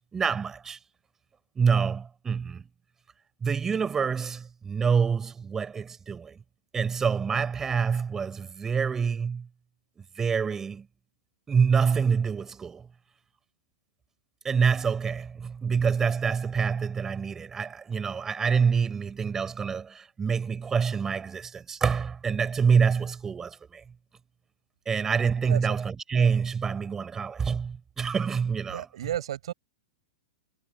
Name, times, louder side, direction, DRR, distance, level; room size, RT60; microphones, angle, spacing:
voice 1, 0.1-0.8 1.6-2.6 3.4-6.4 6.7-9.5 10.2-10.9 11.5-12.9 14.4-23.8 24.9-28.9, right 6 dB, 15° right, 5.8 m, -26 dB
voice 2, 28.7-29.5, right 11 dB, 75° right, 7.5 m, -32 dB
hypercardioid pair, 140°, 3 cm